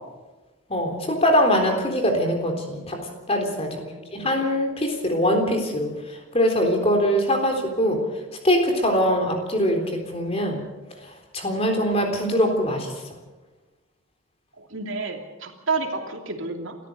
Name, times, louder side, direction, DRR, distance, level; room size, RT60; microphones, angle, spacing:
voice 1, 0.7-3.0 3.3-3.8 4.1-5.9 6.3-8.0 8.4-10.6 11.3-12.9, equal, 30° left, 3 dB, 3.7 m, -22 dB
voice 2, 3.6-4.3 14.6-16.8, right 3 dB, 65° right, 3 dB, 2.9 m, -31 dB
29.5 x 14.0 x 6.8 m, 1.2 s
head